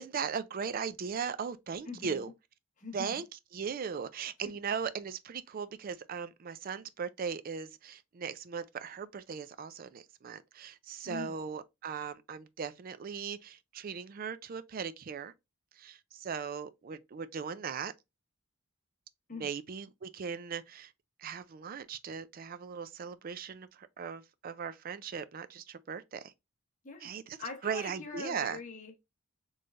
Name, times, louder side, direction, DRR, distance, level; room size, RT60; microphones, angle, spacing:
voice 1, 0.0-2.3 2.9-3.2 3.5-15.3 15.8-17.9 19.3-20.9 21.2-26.3 27.0-27.4 27.6-28.6, right 6 dB, 40° right, 0.3 m, -38 dB
voice 2, 1.9-2.3 2.8-3.1 11.0-11.3 19.3-19.5 26.8-27.1 27.4-29.0, left 4 dB, 35° left, 0.8 m, -42 dB
4.3 x 3.2 x 2.4 m
head